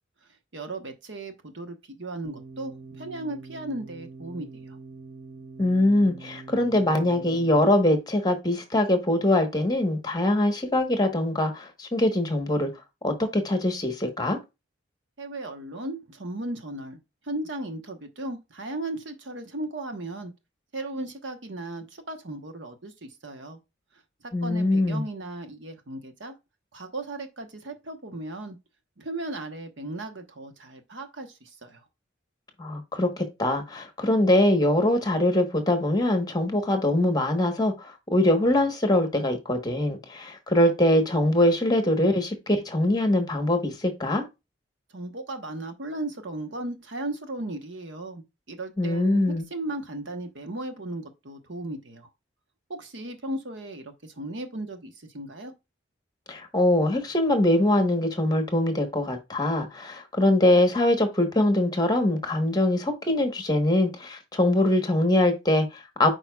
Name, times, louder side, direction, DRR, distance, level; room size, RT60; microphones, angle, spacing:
voice 1, 0.5-4.8 15.2-17.0 17.2-20.3 20.7-23.6 24.2-26.4 26.7-28.6 29.0-31.8 44.9-48.2 48.5-52.1 52.7-55.5, right 2 dB, 70° right, 1.1 m, -36 dB
sound 1, 2.2-7.7, right 3 dB, 50° right, 1.1 m, -44 dB
voice 2, 5.6-12.7 13.0-14.4 24.3-25.0 32.6-44.2 48.8-49.4 56.3-66.1, left 1 dB, 20° left, 1.2 m, -23 dB
8.7 x 4.8 x 2.3 m
head